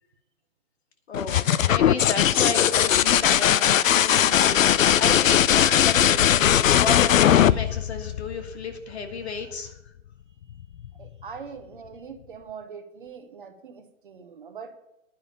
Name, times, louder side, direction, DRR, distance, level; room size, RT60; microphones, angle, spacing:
sound 1, 1.1-8.7 10.5-11.1, left 10 dB, 70° left, 0.6 m, -19 dB
voice 1, 1.1-9.8, left 4 dB, 50° left, 6 dB, 1.6 m, -33 dB
voice 2, 11.0-14.8, right 6 dB, 40° right, 7 dB, 1.0 m, -42 dB
10.5 x 5.5 x 8.4 m, 0.85 s
hypercardioid pair, 175°, 41 cm